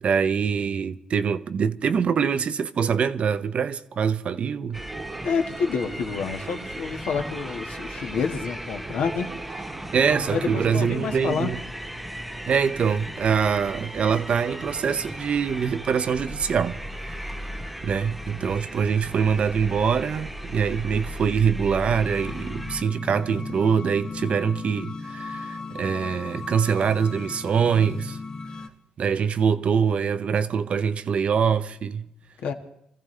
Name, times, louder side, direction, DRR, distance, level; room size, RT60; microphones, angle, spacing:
voice 1, 0.0-4.8 9.9-11.6 12.5-16.8 17.1-17.2 17.8-28.2 29.0-32.1, right 6 dB, 50° right, 0.7 m, -24 dB
sound 1, 4.7-22.8, equal, ahead, 0.5 m, -37 dB
sound 2, 4.7-21.3, right 3 dB, 30° right, 1.1 m, -41 dB
voice 2, 5.2-9.8 10.3-11.5 32.4-32.5, left 5 dB, 75° left, 1.5 m, -28 dB
sound 3, 21.9-28.7, left 4 dB, 35° left, 2.3 m, -37 dB
26.0 x 14.5 x 3.3 m
cardioid pair, 115°, 3 cm